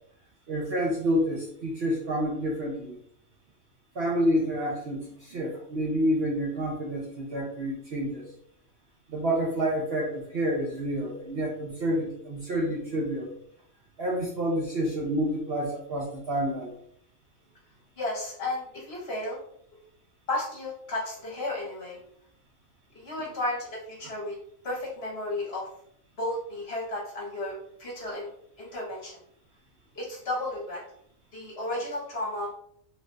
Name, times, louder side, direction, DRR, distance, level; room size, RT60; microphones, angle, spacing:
voice 1, 0.5-3.0 3.9-8.3 9.1-13.3 14.0-16.7 23.2-23.3, equal, 55° right, -2 dB, 0.8 m, -28 dB
voice 2, 18.0-19.4 20.3-22.0 22.9-24.3 24.6-25.7 26.2-27.5 27.8-28.3 28.6-29.1 29.9-30.8 31.3-32.5, left 1 dB, 50° left, -4 dB, 1.1 m, -33 dB
3.2 x 3.2 x 2.5 m, 0.68 s
omnidirectional pair, 1.4 m